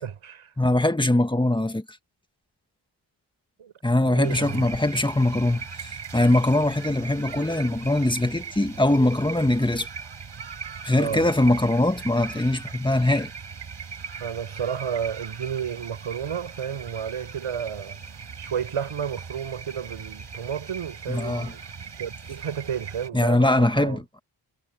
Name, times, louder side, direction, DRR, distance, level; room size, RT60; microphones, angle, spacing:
voice 1, 0.0-0.5 3.6-3.7 4.0-4.7 10.9-11.2 14.2-18.0 18.4-24.0, right 8 dB, 85° right, 7.9 m, -32 dB
voice 2, 0.6-1.8 3.8-9.9 10.8-13.3 21.1-21.5 23.1-24.2, left 1 dB, 10° left, 1.8 m, -22 dB
sound 1, 4.2-23.1, right 5 dB, 55° right, 6.3 m, -39 dB
cardioid pair, 65°, 50 cm